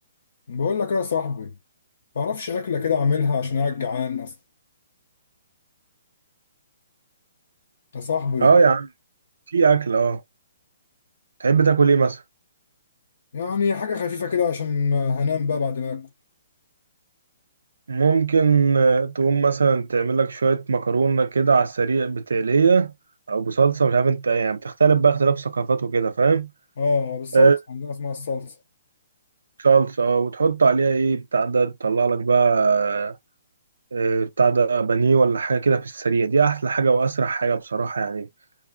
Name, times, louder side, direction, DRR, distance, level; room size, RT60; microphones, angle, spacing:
voice 1, 0.5-1.5 2.2-4.3 7.9-8.5 13.3-16.1 26.8-28.6, left 5 dB, 60° left, 0.5 m, -25 dB
voice 2, 8.4-8.9 9.5-10.2 11.4-12.2 17.9-22.9 23.3-26.5 27.3-27.6 29.6-33.2 33.9-38.3, right 5 dB, 70° right, 0.3 m, -19 dB
2.5 x 2.3 x 2.3 m
figure-of-eight pair, 125°, 0 cm